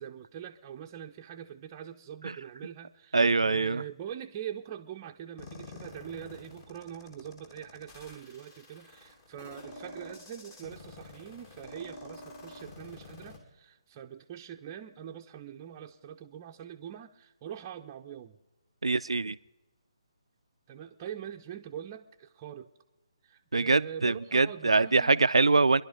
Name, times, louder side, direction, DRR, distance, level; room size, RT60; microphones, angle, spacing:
voice 1, 0.0-18.4 20.7-22.7 23.2-25.2, right 9 dB, 25° right, 3 dB, 0.7 m, -43 dB
voice 2, 3.1-3.8 18.8-19.4 23.5-25.8, right 3 dB, 80° right, 16 dB, 0.5 m, -24 dB
sound 1, 5.4-13.4, left 2 dB, 30° left, 2.6 m, -48 dB
25.0 x 11.0 x 5.2 m, 1.1 s
figure-of-eight pair, 145°, 3 cm